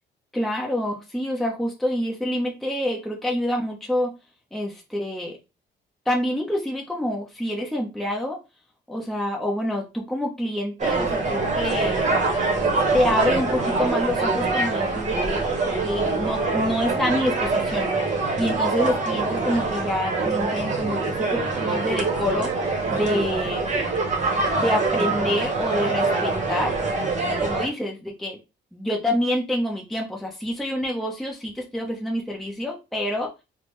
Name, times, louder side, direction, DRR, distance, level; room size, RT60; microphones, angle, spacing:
voice 1, 0.3-4.1 4.5-5.4 6.1-8.4 8.9-12.1 12.9-17.9 18.4-23.7 24.6-26.7 27.4-28.4 28.7-33.3, left 1 dB, ahead, -2 dB, 0.8 m, -27 dB
sound 1, 10.8-27.7, right 3 dB, 35° right, 1.1 m, -24 dB
3.5 x 2.1 x 3.2 m, 0.26 s
cardioid pair, 90°, 20 cm